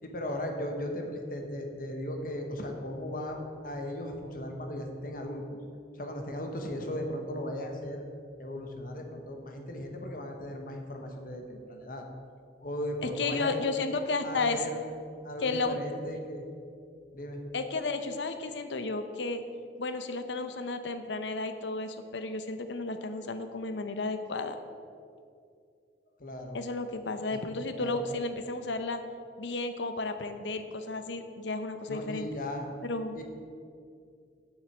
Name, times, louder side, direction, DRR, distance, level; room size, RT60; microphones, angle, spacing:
voice 1, 0.0-5.4 5.9-8.0 8.4-12.0 12.6-13.6 14.2-14.8 15.2-16.5 17.1-17.4 26.2-26.6 27.3-27.4 27.8-28.0 31.9-32.7 33.1-33.2, left 1 dB, 50° left, 3 dB, 1.1 m, -37 dB
voice 2, 13.0-14.6 15.4-15.8 17.5-19.4 19.8-24.6 26.5-29.0 29.4-32.3 32.8-33.2, left 3 dB, 90° left, 9 dB, 0.7 m, -33 dB
7.6 x 7.3 x 6.1 m, 2.4 s
head